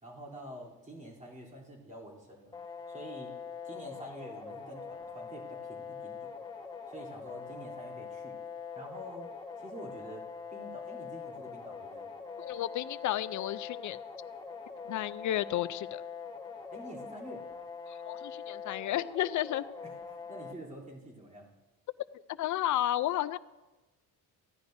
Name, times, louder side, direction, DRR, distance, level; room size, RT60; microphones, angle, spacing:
voice 1, 0.0-2.5 2.9-3.4 3.6-6.3 6.9-8.4 8.7-9.3 9.6-10.2 10.5-12.1 16.7-17.4 19.8-21.5, right 1 dB, 20° right, -3 dB, 3.2 m, -47 dB
sound 1, 2.5-20.5, left 5 dB, 10° left, 1.3 m, -43 dB
voice 2, 12.4-14.0 14.9-16.0 17.9-19.6 22.4-23.4, left 13 dB, 50° left, 15 dB, 0.5 m, -32 dB
16.5 x 10.5 x 2.6 m, 1.1 s
cardioid pair, 105°, 38 cm